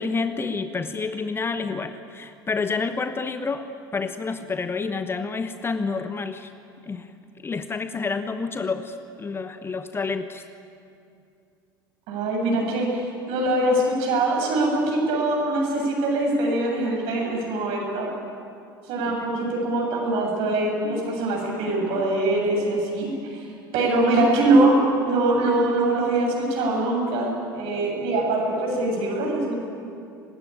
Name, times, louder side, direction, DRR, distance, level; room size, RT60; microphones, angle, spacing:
voice 1, 0.0-6.5 6.8-7.1 7.4-10.5 19.0-19.2, left 4 dB, 20° left, 10 dB, 1.1 m, -29 dB
voice 2, 12.1-18.1 18.9-23.5 23.7-24.8 25.0-29.5, right 2 dB, 50° right, 0 dB, 7.8 m, -23 dB
24.5 x 20.5 x 8.8 m, 2.5 s
figure-of-eight pair, 70°, 12 cm